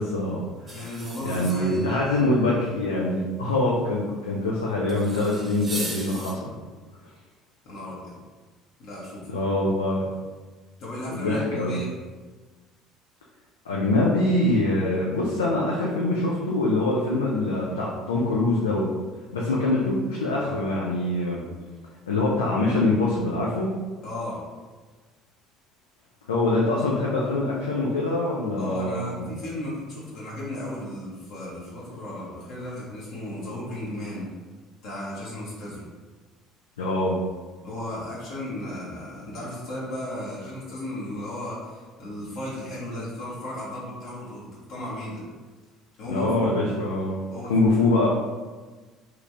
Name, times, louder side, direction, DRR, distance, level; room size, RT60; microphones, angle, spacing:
voice 1, 0.0-0.8 1.2-6.5 9.3-10.1 11.1-11.8 13.6-18.9 19.3-21.5 22.1-23.7 26.3-29.2 36.8-37.2 46.1-47.2 47.5-48.1, left 2 dB, 85° left, -4 dB, 0.4 m, -24 dB
voice 2, 0.7-1.9 7.6-8.2 8.8-9.3 10.8-11.9 24.0-24.5 28.6-34.3 34.8-35.9 37.6-45.3 46.0-46.7 47.3-47.5, left 1 dB, 60° left, -7 dB, 0.9 m, -35 dB
sound 1, 0.7-2.0 4.9-6.3, right 2 dB, 25° right, 0.8 m, -37 dB
3.0 x 2.5 x 3.3 m, 1.4 s
hypercardioid pair, 60°, 0 cm